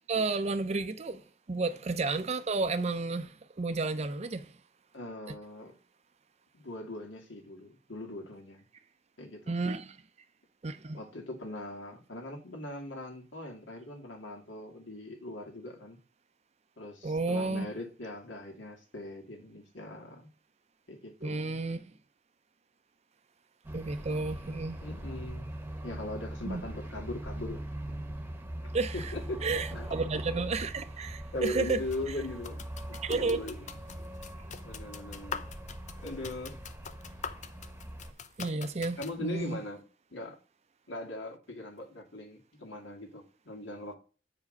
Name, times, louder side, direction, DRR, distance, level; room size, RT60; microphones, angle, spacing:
voice 1, 0.1-1.2 1.5-4.5 5.3-5.4 9.5-10.0 10.6-11.0 17.0-17.7 21.2-21.8 23.7-24.8 26.5-26.6 28.7-29.1 29.4-31.8 33.0-33.5 38.4-39.6, right 3 dB, 35° right, 0.5 m, -32 dB
voice 2, 4.9-5.8 6.5-8.7 9.2-9.6 10.9-16.0 16.8-20.3 20.9-21.6 24.8-25.6 25.8-28.0 28.6-29.4 29.7-29.9 31.3-33.6 34.6-35.5 36.0-36.6 39.0-39.8 40.1-40.4 40.9-44.0, left 1 dB, 85° left, 2.2 m, -40 dB
sound 1, 23.6-38.1, right 1 dB, 10° right, 1.0 m, -41 dB
sound 2, 31.4-39.2, left 6 dB, 40° left, 0.6 m, -45 dB
8.5 x 5.0 x 5.2 m
head